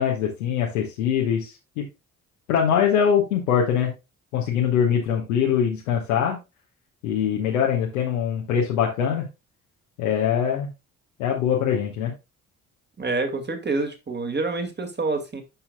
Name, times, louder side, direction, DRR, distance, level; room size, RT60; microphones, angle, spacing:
voice 1, 0.0-1.9 2.5-3.9 4.3-6.4 7.0-9.3 10.0-10.7 11.2-12.1, left 8 dB, 75° left, -1 dB, 1.3 m, -23 dB
voice 2, 13.0-15.4, right 3 dB, 25° right, 6 dB, 2.1 m, -27 dB
11.0 x 5.7 x 2.3 m, 0.25 s
figure-of-eight pair, 45°, 43 cm